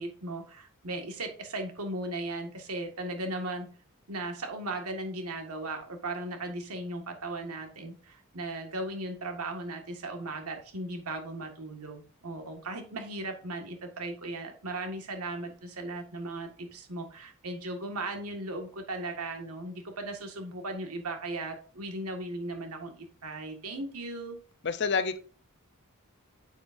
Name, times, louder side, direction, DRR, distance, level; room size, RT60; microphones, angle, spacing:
voice 1, 0.0-3.7 4.1-24.4, right 2 dB, 85° right, 4 dB, 1.8 m, -37 dB
voice 2, 24.6-25.2, left 5 dB, 50° left, 12 dB, 0.6 m, -28 dB
9.6 x 6.5 x 2.6 m, 0.41 s
head